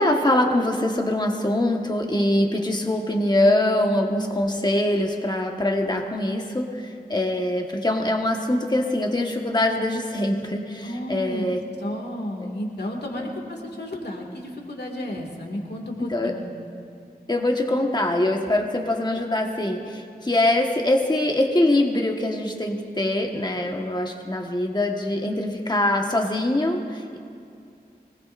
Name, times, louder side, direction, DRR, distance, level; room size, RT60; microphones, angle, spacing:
voice 1, 0.0-11.6 12.4-12.5 13.2-13.3 16.0-16.4 17.3-27.2, left 1 dB, 25° left, 2 dB, 1.4 m, -23 dB
voice 2, 10.8-11.5 11.8-16.5, left 1 dB, 85° left, 1 dB, 2.2 m, -32 dB
24.5 x 19.0 x 2.6 m, 2.5 s
wide cardioid pair, 45°, 17 cm